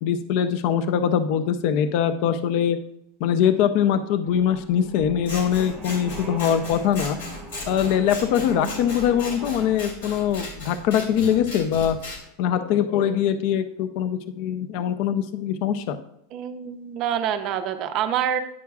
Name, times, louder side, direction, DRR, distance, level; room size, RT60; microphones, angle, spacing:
voice 1, 0.0-2.8 3.2-7.2 7.7-12.0 12.4-16.0, left 9 dB, 45° left, 11 dB, 0.4 m, -22 dB
sound 1, 4.2-9.8, right 2 dB, 10° right, 1.0 m, -40 dB
Scissors, 5.2-12.2, left 2 dB, 75° left, 2.5 m, -36 dB
voice 2, 16.3-18.4, right 9 dB, 35° right, 7 dB, 0.4 m, -26 dB
9.5 x 5.9 x 2.3 m, 0.75 s
supercardioid pair, 170°, 0 cm